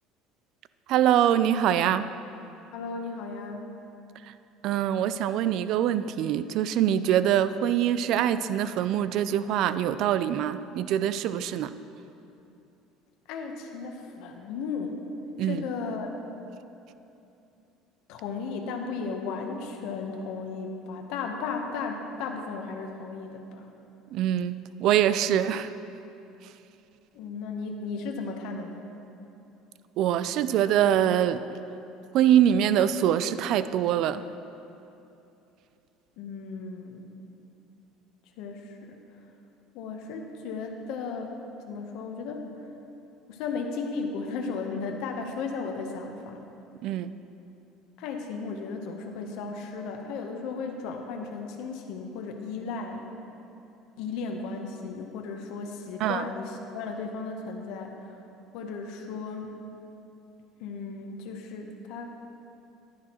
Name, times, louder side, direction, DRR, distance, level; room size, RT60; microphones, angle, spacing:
voice 1, 0.9-2.1 4.6-11.7 15.4-15.6 24.1-25.7 30.0-31.4 32.1-34.2 46.8-47.1 56.0-56.2, right 10 dB, 55° right, 13 dB, 0.3 m, -24 dB
voice 2, 2.7-3.7 13.3-15.0 15.4-16.1 18.1-23.7 27.1-28.9 36.2-37.2 38.4-39.0 39.7-41.3 41.7-42.5 43.3-46.4 48.0-53.0 54.0-58.2 58.5-59.5 60.6-62.2, left 4 dB, 65° left, 3 dB, 0.9 m, -35 dB
11.5 x 10.0 x 3.0 m, 2.8 s
cardioid pair, 145°, 0 cm